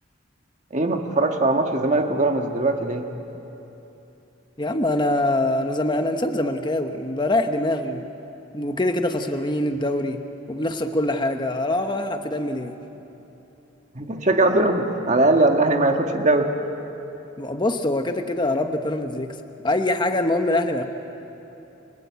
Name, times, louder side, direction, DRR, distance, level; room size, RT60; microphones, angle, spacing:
voice 1, 0.7-3.1 13.9-16.5, right 2 dB, 40° right, 4 dB, 1.5 m, -20 dB
voice 2, 4.6-8.1 8.5-12.8 17.4-19.4 19.6-20.8, left 1 dB, 25° left, 6 dB, 1.0 m, -24 dB
29.5 x 22.0 x 8.3 m, 3.0 s
head